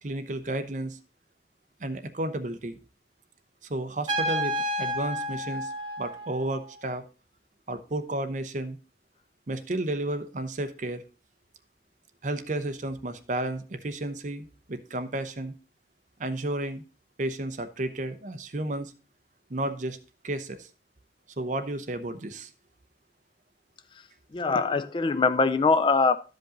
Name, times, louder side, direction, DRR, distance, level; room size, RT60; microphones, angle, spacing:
voice 1, 0.0-1.0 1.8-2.8 3.7-5.7 6.0-7.0 7.7-8.8 9.5-11.0 12.2-15.5 16.2-16.8 17.2-18.9 19.5-20.0 20.2-20.7 21.4-22.5, right 1 dB, 45° right, 9 dB, 0.7 m, -32 dB
Trumpet, 4.1-6.7, equal, 25° right, 1.5 m, -31 dB
voice 2, 23.9-26.2, left 4 dB, 25° left, 11 dB, 0.3 m, -23 dB
12.5 x 5.2 x 3.8 m, 0.35 s
head